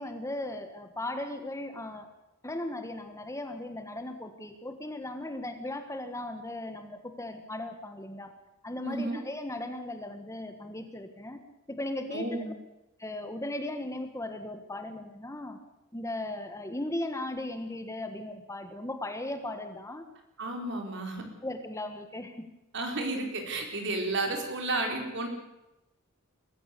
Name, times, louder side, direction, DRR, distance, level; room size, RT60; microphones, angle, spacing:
voice 1, 0.0-2.1 2.4-8.3 8.6-11.4 11.7-12.5 13.0-15.6 15.9-20.0 21.4-22.5, left 1 dB, 15° left, 7 dB, 1.5 m, -37 dB
voice 2, 8.8-9.2 12.1-12.5 20.4-21.2 22.7-25.3, right 2 dB, 60° right, 3 dB, 4.5 m, -32 dB
22.0 x 14.5 x 8.4 m, 0.94 s
head